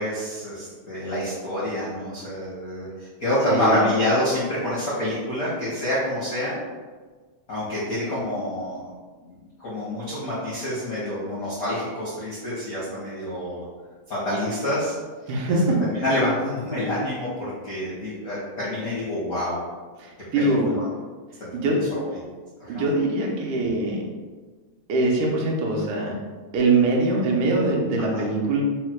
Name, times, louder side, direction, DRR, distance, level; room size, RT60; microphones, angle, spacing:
voice 1, 0.0-6.5 7.5-8.9 9.2-13.6 14.1-14.9 15.9-19.6 20.4-20.8 21.4-22.2 22.6-22.8 28.1-28.2, left 1 dB, 75° left, -9 dB, 0.8 m, -27 dB
voice 2, 3.5-3.8 15.3-15.8 20.0-20.7 21.5-21.8 22.7-24.0 24.9-26.1 26.5-28.6, right 2 dB, 85° right, -2 dB, 2.3 m, -22 dB
5.5 x 2.1 x 4.5 m, 1.4 s
omnidirectional pair, 3.5 m